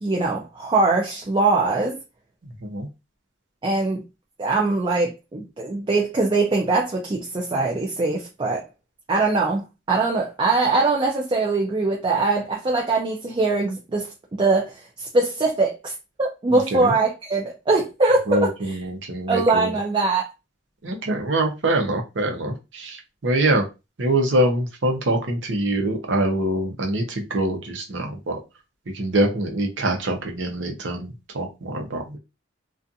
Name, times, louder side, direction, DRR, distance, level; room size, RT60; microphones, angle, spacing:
voice 1, 0.0-2.0 3.6-4.0 4.4-8.6 9.1-15.9 16.2-18.8 19.3-20.3, right 3 dB, 25° right, 0.4 m, -22 dB
voice 2, 16.5-16.9 18.3-19.7 20.8-23.0 23.2-23.6 24.0-28.4 28.9-32.2, right 1 dB, 70° right, 0.7 m, -24 dB
2.4 x 2.4 x 2.6 m
head